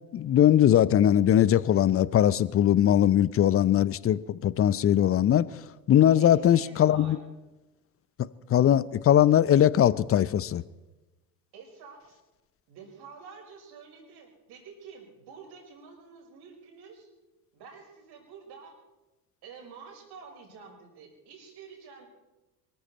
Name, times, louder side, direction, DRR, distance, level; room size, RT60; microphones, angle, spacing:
voice 1, 0.1-5.5 5.9-7.2 8.5-10.6, left 11 dB, 30° left, 0.7 m, -21 dB
voice 2, 6.1-7.2 11.5-12.2 12.7-17.1 17.5-18.8 19.4-22.1, right 5 dB, 55° right, 5.6 m, -48 dB
24.0 x 14.0 x 4.3 m
hypercardioid pair, 65°, 47 cm